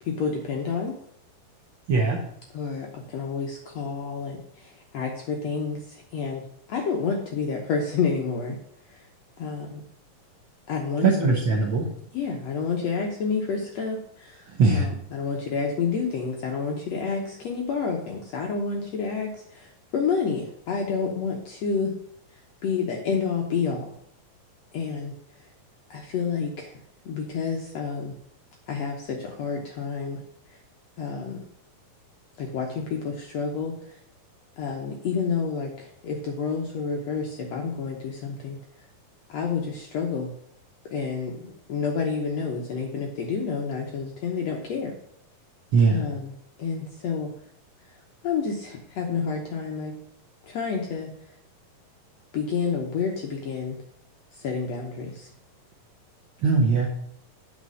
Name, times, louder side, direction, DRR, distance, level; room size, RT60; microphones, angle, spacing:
voice 1, 0.0-0.9 2.5-6.4 6.7-8.6 8.9-9.0 9.4-9.8 10.7-11.3 12.1-21.9 22.6-23.9 24.7-25.1 25.9-26.8 27.0-28.1 28.7-30.2 31.0-31.4 32.4-34.0 34.6-38.6 39.3-40.3 40.9-44.9 45.9-46.3 46.6-47.3 48.2-49.9 50.4-51.1 52.3-53.8 54.3-55.3, left 5 dB, 70° left, 1 dB, 1.6 m, -29 dB
voice 2, 1.9-2.2 11.0-11.9 14.5-14.9 45.7-46.0 56.4-56.9, right 4 dB, 85° right, -4 dB, 1.0 m, -21 dB
8.3 x 4.5 x 6.3 m, 0.69 s
omnidirectional pair, 4.1 m